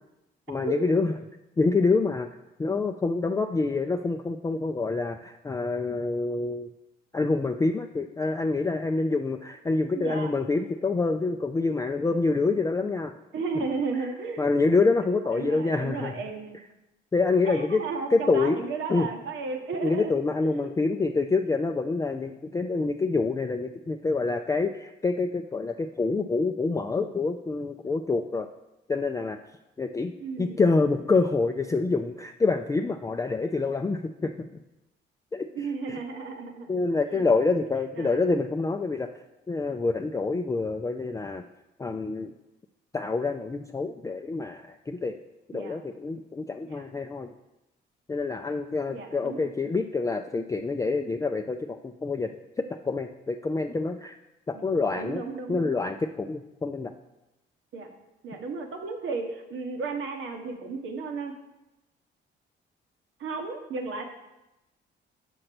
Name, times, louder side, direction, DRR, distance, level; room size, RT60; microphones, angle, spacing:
voice 1, 0.5-1.1 1.6-2.3 2.6-6.7 7.1-13.1 13.6-13.7 14.0-14.1 14.4-16.1 17.1-17.8 18.1-18.6 18.9-19.1 19.8-28.5 28.9-29.4 29.8-30.1 30.4-34.3 35.3-35.5 35.9-36.0 36.7-39.1 39.5-41.4 41.8-42.3 42.9-45.2 45.5-47.3 48.1-52.3 52.6-54.2 54.5-55.2 55.5-56.9, left 3 dB, 15° left, 5 dB, 0.4 m, -26 dB
voice 2, 9.9-10.3 13.3-14.5 15.3-16.6 17.4-20.1 20.4-21.1 30.2-30.6 35.5-37.2 37.6-37.7 38.0-38.3 45.5-45.8 46.7-46.8 48.9-49.5 54.5-54.7 54.9-55.7 57.7-57.9 58.2-61.3 63.2-64.0, right 4 dB, 80° right, 4 dB, 1.3 m, -34 dB
6.4 x 5.3 x 6.0 m, 0.95 s
cardioid pair, 90°, 20 cm